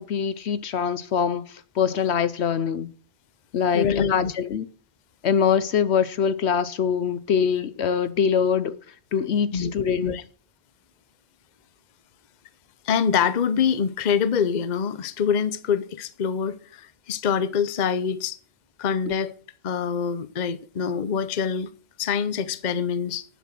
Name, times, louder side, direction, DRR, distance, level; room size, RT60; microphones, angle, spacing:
voice 1, 0.0-2.9 3.5-4.7 5.2-8.8 9.1-10.2 19.1-19.3, left 7 dB, 65° left, 1.0 m, -24 dB
voice 2, 3.7-4.3 9.5-9.7 10.0-10.2 12.8-18.4 18.8-19.3 19.6-21.7 22.0-23.2, left 7 dB, 45° left, 0.8 m, -25 dB
11.5 x 7.1 x 7.7 m
omnidirectional pair, 1.2 m